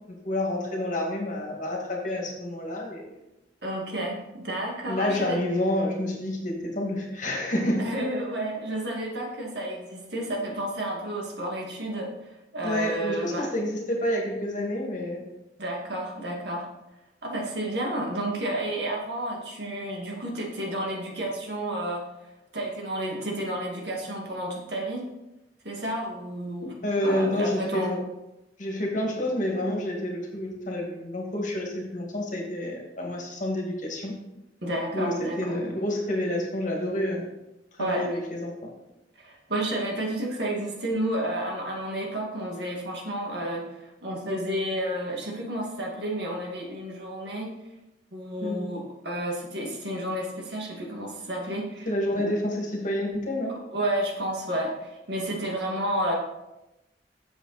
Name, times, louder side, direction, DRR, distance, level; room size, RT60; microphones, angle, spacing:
voice 1, 0.2-3.0 4.9-7.9 12.6-15.2 26.8-28.0 28.6-34.2 34.9-37.3 37.7-38.7 48.4-48.6 51.9-53.5, left 1 dB, 45° left, -1 dB, 2.1 m, -28 dB
voice 2, 3.6-5.4 7.8-13.5 15.6-16.7 17.2-22.1 22.5-25.0 25.6-26.8 27.0-27.9 34.6-35.6 37.8-38.1 39.2-47.5 48.1-51.9 52.2-52.3 53.7-56.1, right 1 dB, 65° right, -1 dB, 2.1 m, -31 dB
8.3 x 7.2 x 4.2 m, 0.94 s
head